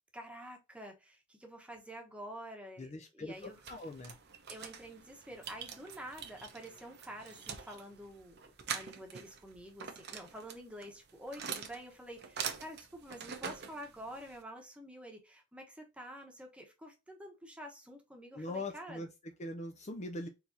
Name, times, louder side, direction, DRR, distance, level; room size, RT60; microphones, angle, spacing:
voice 1, 0.1-3.6 4.5-19.1, equal, 5° right, 1.1 m, -48 dB
voice 2, 2.8-4.2 18.3-19.1 19.4-20.3, left 2 dB, 35° left, 0.5 m, -41 dB
sound 1, 3.3-14.4, right 7 dB, 55° right, 0.8 m, -45 dB
4.6 x 3.4 x 2.7 m
head